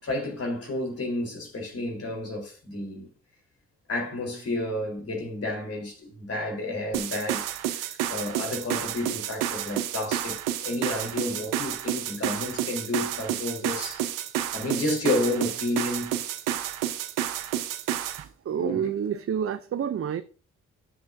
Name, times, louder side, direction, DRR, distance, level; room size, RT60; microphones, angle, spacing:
voice 1, 0.0-3.1 3.9-14.0 14.5-16.2 18.6-18.8, left 2 dB, 50° left, 4.2 m, -31 dB
sound 1, 6.9-18.2, right 12 dB, 85° right, 0.8 m, -30 dB
voice 2, 18.2-20.2, right 8 dB, 45° right, 0.6 m, -29 dB
11.0 x 7.4 x 2.7 m
hypercardioid pair, 45°, 31 cm